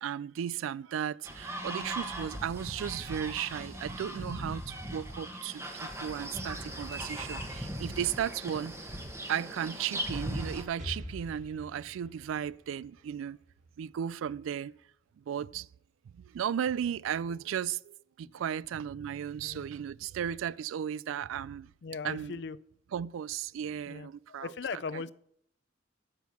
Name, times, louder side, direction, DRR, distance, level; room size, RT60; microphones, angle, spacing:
voice 1, 0.0-8.8 9.3-13.4 13.8-14.7 15.3-15.7 16.2-21.7 22.0-22.4 22.9-25.0, right 9 dB, 90° right, 0.3 m, -35 dB
sound 1, 1.2-10.6, right 1 dB, 15° right, 1.0 m, -39 dB
Explosion, 10.8-14.6, left 1 dB, 40° right, 2.2 m, -46 dB
voice 2, 21.8-22.6 23.9-24.1 24.4-25.1, left 5 dB, 60° left, 0.4 m, -38 dB
9.1 x 6.4 x 7.0 m
head